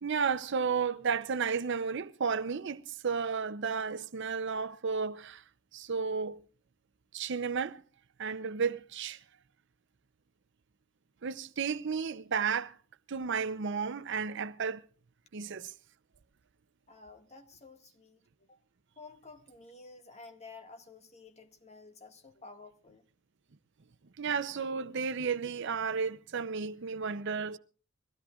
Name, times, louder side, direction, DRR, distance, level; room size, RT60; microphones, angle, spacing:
voice 1, 0.0-5.4 5.7-6.4 7.1-7.8 8.2-9.2 11.2-12.8 13.1-14.8 15.3-15.7 24.2-27.6, right 5 dB, 65° right, 0.7 m, -33 dB
voice 2, 16.9-18.2 18.5-18.6 19.0-23.1, left 3 dB, 35° left, 1.9 m, -52 dB
23.0 x 16.0 x 2.4 m
head